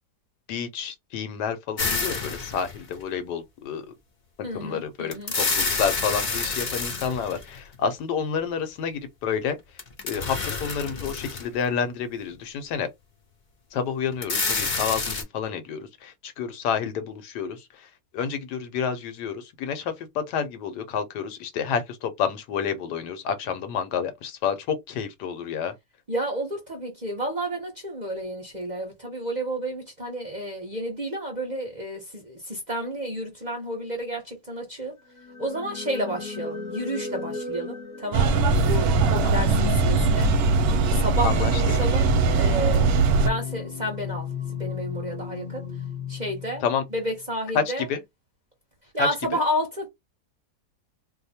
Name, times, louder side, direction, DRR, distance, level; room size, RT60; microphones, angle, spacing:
voice 1, 0.5-3.9 4.5-9.6 10.0-12.9 13.7-25.7 41.2-41.6 46.6-46.8 47.5-48.0 49.0-49.4, left 7 dB, 75° left, 1.2 m, -29 dB
sound 1, 1.8-3.0 5.1-7.8 9.8-11.7 12.2-12.3 14.1-15.2, left 4 dB, 50° left, 0.5 m, -28 dB
voice 2, 4.4-5.4 26.1-35.0 35.4-40.3 40.9-42.1 42.3-42.9 43.2-44.3 44.6-45.8 46.1-46.6 46.9-47.9 48.8-49.9, right 1 dB, 35° right, 0.8 m, -31 dB
sound 2, 35.1-47.0, left 4 dB, 25° left, 0.9 m, -34 dB
sound 3, 38.1-43.3, right 4 dB, 70° right, 1.0 m, -21 dB
2.8 x 2.2 x 4.1 m
omnidirectional pair, 1.8 m